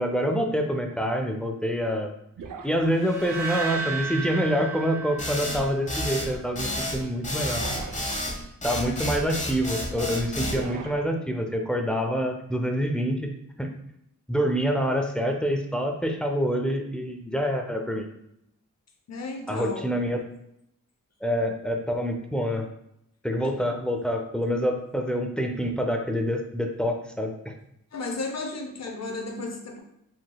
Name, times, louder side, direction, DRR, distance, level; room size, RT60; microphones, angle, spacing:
voice 1, 0.0-2.1 2.6-7.6 8.6-13.3 13.6-13.7 14.3-18.1 19.5-20.2 21.2-22.7 23.2-27.5, equal, 5° left, 3 dB, 0.6 m, -26 dB
sound 1, 2.4-3.3 5.7-5.9 7.5-8.3 10.5-11.0, right 5 dB, 70° right, 0.6 m, -39 dB
sound 2, 2.9-6.1, right 4 dB, 25° right, 1.2 m, -34 dB
sound 3, 5.2-10.6, left 1 dB, 20° left, 1.0 m, -30 dB
voice 2, 8.7-9.1 19.1-19.9 23.4-23.5 27.9-29.8, left 3 dB, 50° left, 3 dB, 0.8 m, -34 dB
5.1 x 3.8 x 2.3 m, 0.79 s
wide cardioid pair, 85°, 33 cm